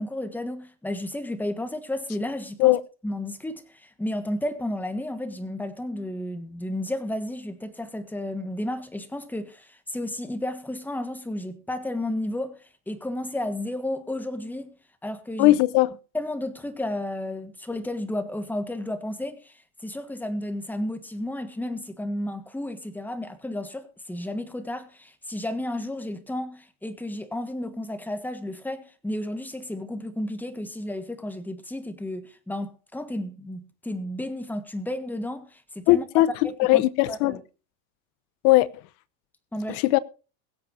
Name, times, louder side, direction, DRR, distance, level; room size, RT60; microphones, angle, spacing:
voice 1, 0.0-2.8 3.0-12.6 12.9-14.7 15.0-15.6 16.1-36.0 36.4-37.4 39.5-39.8, left 1 dB, 5° left, 1.5 m, -32 dB
voice 2, 15.4-15.9 35.9-36.3 36.6-37.4 38.4-38.7 39.7-40.0, left 18 dB, 75° left, 0.9 m, -19 dB
23.0 x 7.7 x 2.7 m
supercardioid pair, 130°, 44 cm